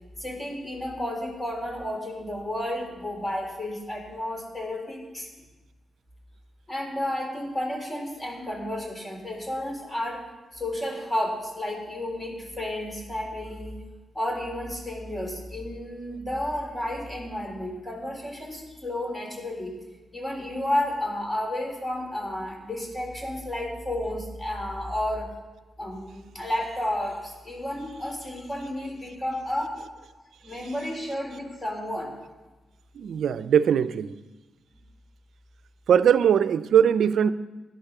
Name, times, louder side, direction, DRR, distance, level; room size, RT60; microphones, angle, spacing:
voice 1, 0.2-5.3 6.7-10.2 10.5-13.8 14.1-19.7 20.1-25.3 25.8-29.8 30.4-32.1, left 1 dB, 30° left, 3.8 m, -32 dB
voice 2, 32.9-34.1 35.9-37.3, right 8 dB, 75° right, 0.4 m, -20 dB
14.0 x 10.5 x 6.0 m
cardioid pair, 60°, 0 cm